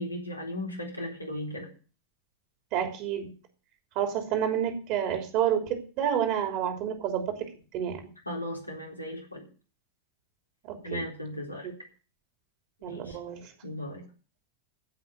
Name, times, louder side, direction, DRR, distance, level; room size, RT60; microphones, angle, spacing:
voice 1, 0.0-1.7 8.3-9.4 10.8-11.7 12.9-13.2 13.6-14.0, left 1 dB, 85° left, -1 dB, 4.0 m, -36 dB
voice 2, 2.7-3.3 3.9-8.0 10.6-11.0 12.8-13.5, right 9 dB, 45° right, 5 dB, 3.2 m, -29 dB
15.5 x 5.8 x 8.0 m, 0.36 s
figure-of-eight pair, 90°, 0 cm